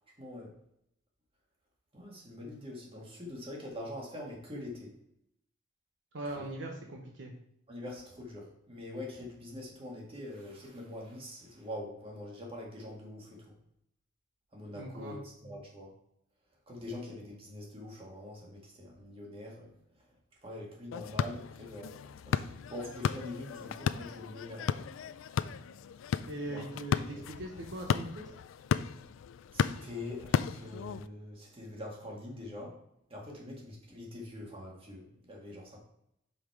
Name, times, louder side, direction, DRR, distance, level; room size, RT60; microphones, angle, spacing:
voice 1, 0.2-0.5 1.9-4.9 6.4-6.5 7.7-13.4 14.5-15.9 16.7-19.7 20.4-24.8 26.5-26.6 27.1-27.3 29.5-32.8 33.1-35.8, left 1 dB, 30° right, -2 dB, 1.8 m, -44 dB
voice 2, 6.1-7.3 14.7-15.2 26.3-28.3, right 1 dB, 65° right, 1 dB, 0.9 m, -40 dB
sound 1, 20.9-31.1, left 7 dB, 80° left, 0.3 m, -35 dB
5.6 x 5.0 x 4.6 m, 0.77 s
head